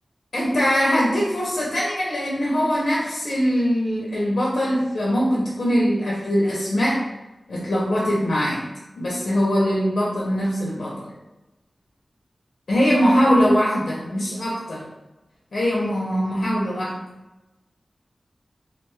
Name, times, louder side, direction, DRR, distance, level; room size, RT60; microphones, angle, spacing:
voice 1, 0.3-7.0 7.5-8.7 9.0-11.1 12.7-14.9 15.5-17.0, equal, 85° left, -6 dB, 0.6 m, -22 dB
2.5 x 2.2 x 3.0 m, 1.0 s
wide cardioid pair, 85°, 0 cm